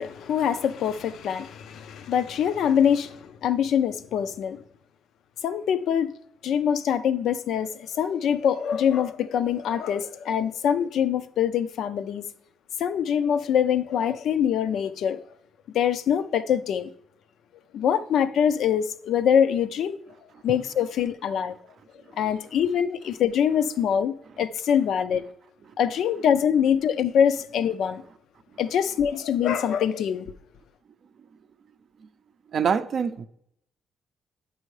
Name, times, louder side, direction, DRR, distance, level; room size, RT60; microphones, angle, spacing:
voice 1, 0.0-4.6 5.4-6.1 6.4-12.2 12.8-15.2 15.7-16.9 17.7-20.0 20.4-21.5 22.2-25.2 25.8-28.0 28.6-30.2, left 8 dB, 75° left, 0.4 m, -24 dB
voice 2, 32.5-33.2, right 6 dB, 55° right, 0.4 m, -24 dB
8.3 x 5.4 x 3.1 m
cardioid pair, 90°, 0 cm